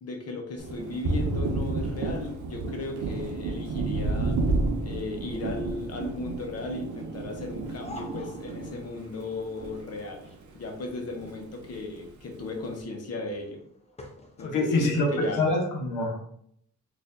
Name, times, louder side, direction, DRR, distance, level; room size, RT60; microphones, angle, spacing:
voice 1, 0.0-4.4 4.8-10.2 10.5-13.6 14.4-15.5, left 3 dB, 55° left, 2 dB, 0.7 m, -36 dB
Thunder, 0.6-10.4 10.7-11.8, right 3 dB, 70° right, 0.5 m, -31 dB
sound 1, 7.6-14.8, left 1 dB, 20° left, 0.5 m, -49 dB
voice 2, 14.4-16.2, left 2 dB, 85° left, 2 dB, 0.8 m, -25 dB
4.2 x 2.5 x 2.5 m, 0.69 s
wide cardioid pair, 155°, 31 cm